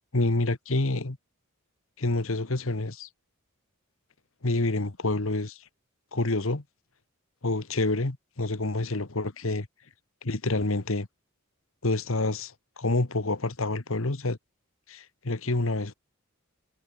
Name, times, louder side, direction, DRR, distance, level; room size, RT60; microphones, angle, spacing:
voice 1, 0.1-1.2 2.0-3.1 4.4-5.6 6.1-6.6 7.4-9.6 10.2-11.1 11.8-14.4 14.9-15.9, left 2 dB, 70° left, 1.5 m, -28 dB
head